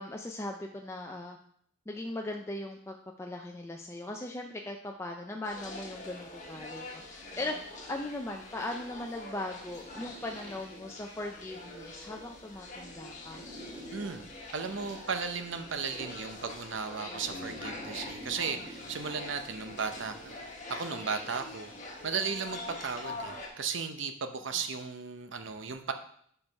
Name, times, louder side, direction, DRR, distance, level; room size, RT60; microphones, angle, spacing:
voice 1, 0.0-1.4 1.9-13.4, left 2 dB, 15° left, 2 dB, 0.4 m, -39 dB
sound 1, 5.4-23.5, left 2 dB, 40° left, 1.3 m, -45 dB
sound 2, 9.7-10.7 13.3-15.0 17.2-20.7 21.2-21.6, equal, 35° right, 1.6 m, -48 dB
voice 2, 13.9-14.2 14.5-21.7 22.0-25.9, right 5 dB, 65° right, 8 dB, 0.6 m, -35 dB
5.4 x 4.6 x 5.2 m, 0.65 s
head